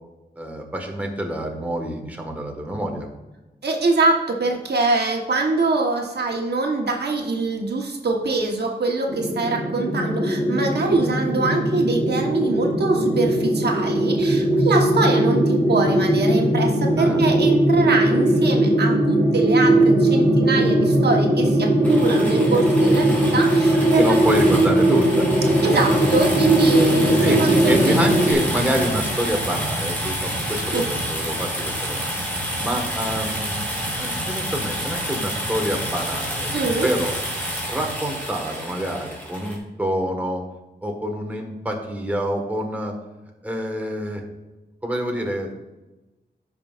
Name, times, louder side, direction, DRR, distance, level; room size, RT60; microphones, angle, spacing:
voice 1, 0.4-3.1 17.0-17.2 23.7-25.3 26.7-26.9 27.2-32.1 32.6-33.6 34.0-36.5 36.8-37.1 37.7-40.4 40.8-42.9 43.4-44.2 44.8-45.5, equal, 10° right, 1 dB, 1.5 m, -27 dB
voice 2, 3.6-24.0 25.6-28.0 30.7-30.8 36.5-36.9, right 3 dB, 70° right, 1 dB, 1.2 m, -23 dB
sound 1, 9.1-28.3, right 1 dB, 35° right, 2.4 m, -19 dB
sound 2, 21.8-39.6, equal, 10° left, 3.1 m, -28 dB
16.0 x 5.6 x 2.5 m, 1.1 s
wide cardioid pair, 105°, 18 cm